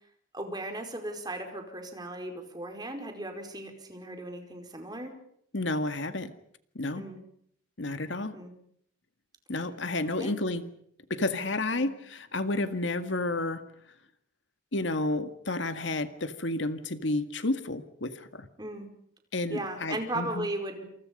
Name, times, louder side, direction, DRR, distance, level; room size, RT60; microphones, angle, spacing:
voice 1, 0.3-5.1 6.9-7.2 8.3-8.5 10.2-10.4 11.8-11.9 18.6-18.9 19.5-20.8, right 1 dB, 20° right, 4 dB, 4.9 m, -36 dB
voice 2, 5.5-6.3 6.8-7.0 7.8-8.4 9.5-10.6 11.1-13.6 14.7-18.5 19.3-20.5, left 2 dB, 70° left, 9 dB, 1.9 m, -31 dB
28.5 x 28.0 x 5.3 m, 0.68 s
head